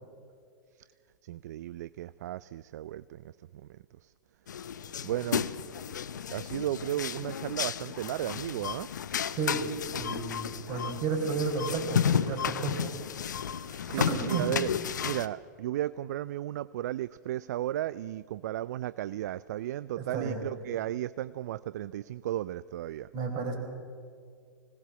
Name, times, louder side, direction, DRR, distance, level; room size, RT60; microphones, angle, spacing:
voice 1, 1.2-3.2 5.0-5.6 6.3-8.9 13.8-14.7 15.0-23.1, right 13 dB, 65° right, 18 dB, 0.4 m, -34 dB
sound 1, 4.5-15.3, left 8 dB, 75° left, 0.7 m, -33 dB
voice 2, 10.0-12.9 13.6-14.5 20.0-20.4 23.1-23.6, right 4 dB, 40° right, 4 dB, 4.5 m, -32 dB
20.5 x 17.5 x 7.4 m, 2.2 s
hypercardioid pair, 100°, 10 cm